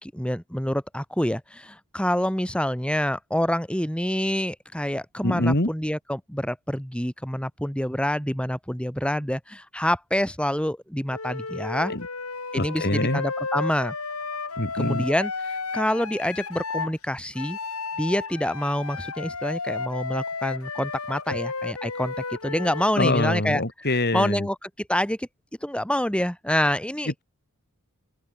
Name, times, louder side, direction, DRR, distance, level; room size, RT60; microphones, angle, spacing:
voice 1, 0.0-11.9 12.5-13.9 14.7-15.3 15.7-17.6 18.0-23.6 24.1-25.3 25.6-27.2, equal, 5° left, 4.4 m, -27 dB
voice 2, 5.2-5.7 11.9-12.1 12.5-13.2 14.6-15.0 23.0-24.5, left 1 dB, 50° left, 4.5 m, -24 dB
Wind instrument woodwind instrument, 11.1-16.9 17.4-23.0, left 4 dB, 90° left, 4.5 m, -33 dB
open air
head